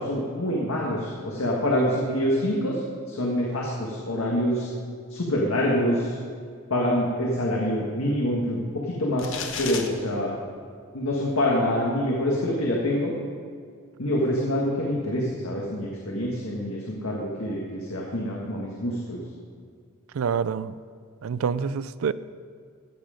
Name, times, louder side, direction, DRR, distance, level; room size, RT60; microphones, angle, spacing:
voice 1, 0.0-2.8 3.1-4.7 5.1-6.2 6.7-9.3 9.6-10.3 10.9-13.1 14.0-19.2, left 1 dB, 85° left, -2 dB, 1.7 m, -26 dB
sound 1, 9.2-9.9, left 6 dB, 65° left, 1.1 m, -32 dB
voice 2, 20.1-20.7 21.2-22.1, right 6 dB, 80° right, 16 dB, 0.4 m, -26 dB
15.0 x 7.7 x 5.1 m, 2.1 s
head